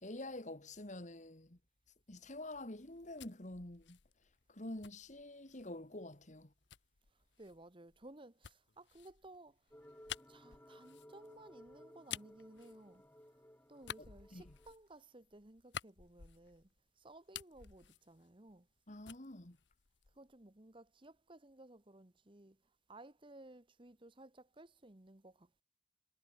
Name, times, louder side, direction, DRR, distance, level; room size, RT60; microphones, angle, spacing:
voice 1, 0.0-1.6 2.1-4.0 4.5-6.5 14.0-14.6 18.9-19.6, left 1 dB, 40° left, 2.0 m, -47 dB
sound 1, 2.8-5.8 6.7-13.4 13.8-16.8 17.1-18.8 19.0-20.4, left 9 dB, 75° left, 1.0 m, -52 dB
voice 2, 7.4-9.6 10.3-13.0 13.7-16.7 17.0-18.7 20.2-22.6 22.9-25.6, right 2 dB, 30° right, 1.3 m, -57 dB
sound 2, 9.7-14.7, equal, 10° left, 2.8 m, -60 dB
head